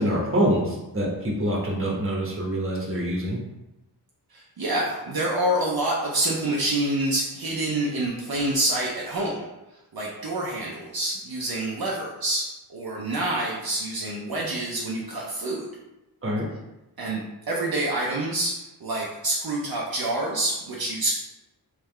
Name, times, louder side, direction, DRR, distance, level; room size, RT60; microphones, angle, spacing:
voice 1, 0.0-3.4 16.2-16.4, equal, 30° right, -3 dB, 1.1 m, -25 dB
voice 2, 4.3-9.3 9.9-15.6 17.0-17.2 17.5-18.5 18.8-21.2, right 1 dB, 60° right, -3 dB, 0.7 m, -27 dB
3.6 x 3.3 x 3.2 m, 0.97 s
wide cardioid pair, 90°, 41 cm